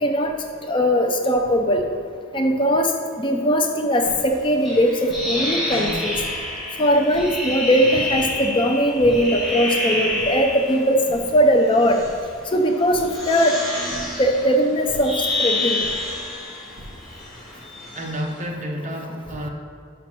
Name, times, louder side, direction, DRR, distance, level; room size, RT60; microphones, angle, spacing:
voice 1, 0.0-0.3 0.7-1.8 2.3-2.9 3.2-6.1 6.8-12.0 12.5-13.6 14.2-15.1 15.4-15.8, equal, 25° left, 0.5 m, -19 dB
sound 1, 4.0-4.5 5.1-5.5 6.0-6.5 7.1-7.5 8.1-8.7 9.1-9.6 10.1-10.5 11.0-11.7 12.0-12.5 12.9-13.4 13.8-14.4 14.9-15.4 15.8-16.4 16.7-17.3, right 1 dB, 70° right, 1.7 m, -41 dB
sound 2, 4.6-10.9 11.7-12.3 13.0-18.3, left 2 dB, ahead, 1.7 m, -28 dB
sound 3, 5.7-6.2, left 1 dB, 85° left, 1.0 m, -31 dB
voice 2, 17.9-19.5, equal, 35° right, 0.8 m, -30 dB
6.1 x 5.8 x 6.0 m
head